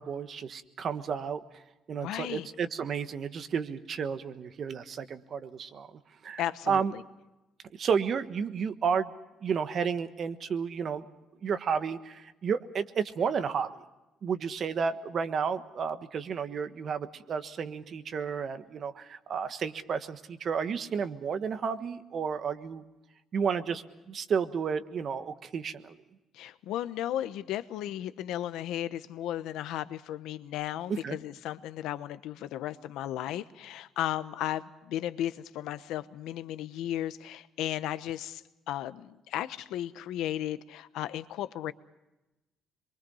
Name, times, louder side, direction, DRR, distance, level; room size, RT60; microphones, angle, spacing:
voice 1, 0.0-1.4 1.9-6.4 6.7-6.9 7.8-9.1 9.4-11.0 11.4-13.7 14.2-22.8 23.3-25.9 30.9-31.2, right 6 dB, 40° right, 10 dB, 1.3 m, -32 dB
voice 2, 2.0-2.5 6.4-7.0 26.3-41.7, left 12 dB, 85° left, 13 dB, 1.0 m, -35 dB
27.0 x 23.5 x 5.6 m, 1.0 s
cardioid pair, 150°, 0 cm